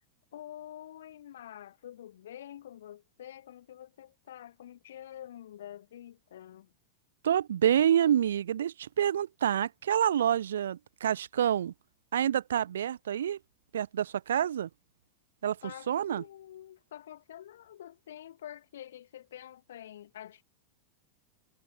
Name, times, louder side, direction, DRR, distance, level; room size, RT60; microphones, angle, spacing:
voice 1, 0.3-6.7 15.6-20.4, left 11 dB, 60° left, 1.8 m, -47 dB
voice 2, 7.2-11.7 12.1-13.4 13.7-14.7 15.4-16.2, right 10 dB, 65° right, 0.7 m, -27 dB
figure-of-eight pair, 90°, 0 cm